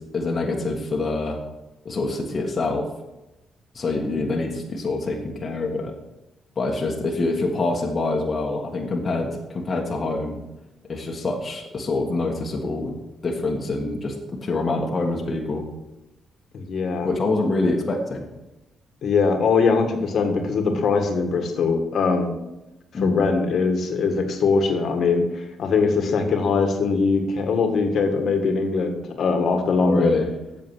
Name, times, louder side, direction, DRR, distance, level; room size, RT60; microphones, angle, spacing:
voice 1, 0.0-1.4 1.8-2.9 3.7-5.9 6.6-10.4 10.9-13.0 13.2-15.6 17.0-18.3 22.9-23.3 29.8-30.3, left 2 dB, 35° left, -1 dB, 1.5 m, -25 dB
voice 2, 16.5-17.1 19.0-22.3 23.0-30.2, left 4 dB, 60° left, 5 dB, 1.7 m, -21 dB
8.3 x 6.8 x 6.1 m, 0.98 s
cardioid pair, 90°, 0 cm